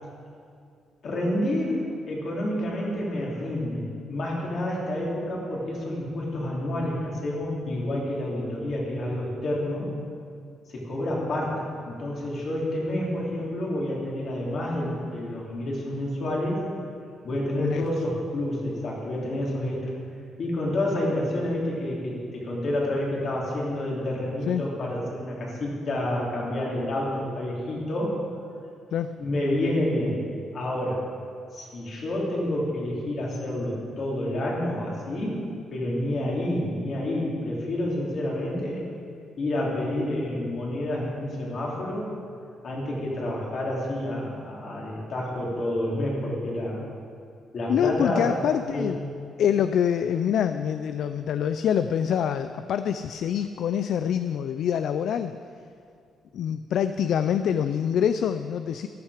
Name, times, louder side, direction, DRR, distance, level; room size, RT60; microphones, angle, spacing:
voice 1, 1.0-9.9 10.7-16.6 17.2-20.0 20.4-28.2 29.2-30.2 30.5-31.1 31.5-35.4 35.7-38.9 39.4-42.1 42.6-46.8 47.5-48.4 48.7-48.9, left 1 dB, 40° left, -4 dB, 3.2 m, -29 dB
voice 2, 47.7-49.0 49.4-55.3 56.3-58.9, left 8 dB, 60° left, 10 dB, 0.4 m, -25 dB
14.0 x 13.0 x 5.0 m, 2.4 s
cardioid pair, 175°, 0 cm